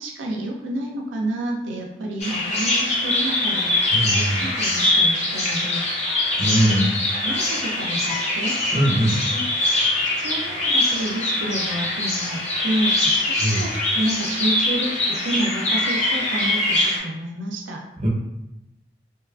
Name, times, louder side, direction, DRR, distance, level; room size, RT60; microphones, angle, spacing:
voice 1, 0.0-5.9 6.5-6.9 7.1-8.6 9.3-9.5 10.2-17.8, right 1 dB, 85° right, 0 dB, 0.4 m, -29 dB
Bird vocalization bird call bird song, 2.2-17.0, left 2 dB, 35° left, 0.6 m, -23 dB
voice 2, 3.9-4.5 6.4-6.9 8.7-9.1 13.4-13.6 18.0-18.1, right 1 dB, 35° right, -3 dB, 0.6 m, -21 dB
2.8 x 2.3 x 2.3 m, 0.95 s
head